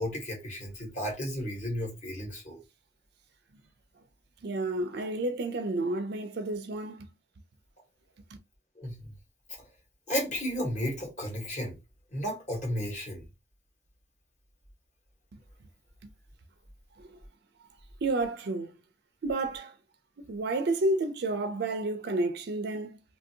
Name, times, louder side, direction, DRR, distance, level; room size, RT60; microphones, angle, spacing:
voice 1, 0.0-2.6 8.8-9.1 10.1-11.8 12.1-13.2, equal, 40° left, 1.3 m, -33 dB
voice 2, 4.4-7.1 18.0-18.7 19.2-19.7 20.2-23.0, right 2 dB, 60° right, 0.4 m, -30 dB
2.8 x 2.6 x 2.7 m
head